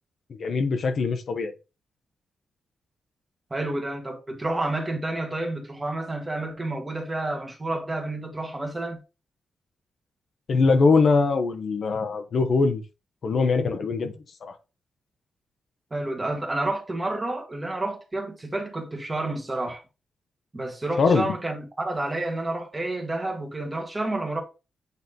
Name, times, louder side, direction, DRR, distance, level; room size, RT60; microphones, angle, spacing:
voice 1, 0.3-1.5 10.5-12.8 13.2-14.1 14.4-14.5 21.0-21.3, left 4 dB, 55° left, 0.9 m, -22 dB
voice 2, 3.5-9.0 15.9-19.8 20.5-24.4, right 2 dB, 20° right, 1.5 m, -30 dB
8.2 x 3.2 x 3.8 m
wide cardioid pair, 135°, 0 cm